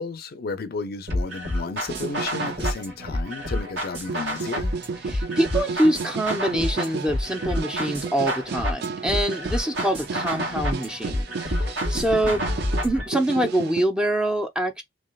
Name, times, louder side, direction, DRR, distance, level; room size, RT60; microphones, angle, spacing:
voice 1, 0.0-4.7 12.3-12.6, left 4 dB, 55° left, 0.4 m, -33 dB
sound 1, 1.1-13.1, equal, 75° right, 1.9 m, -29 dB
sound 2, 1.9-2.8 3.1-3.8 4.1-13.8, right 5 dB, 60° right, 0.4 m, -33 dB
voice 2, 5.0-12.4 12.8-14.8, right 1 dB, 5° right, 0.5 m, -25 dB
3.1 x 2.8 x 2.3 m
head